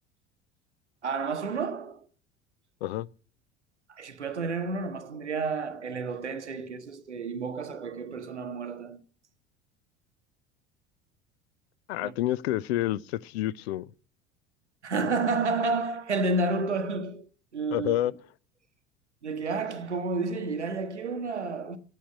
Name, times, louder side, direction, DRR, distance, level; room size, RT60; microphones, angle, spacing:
voice 1, 1.0-2.0 3.9-9.0 12.0-12.1 14.8-18.0 19.2-21.8, right 3 dB, 90° right, 0.9 m, -30 dB
voice 2, 11.9-13.9 17.7-18.1, left 14 dB, 65° left, 0.5 m, -28 dB
8.6 x 6.8 x 8.2 m
figure-of-eight pair, 65°, 34 cm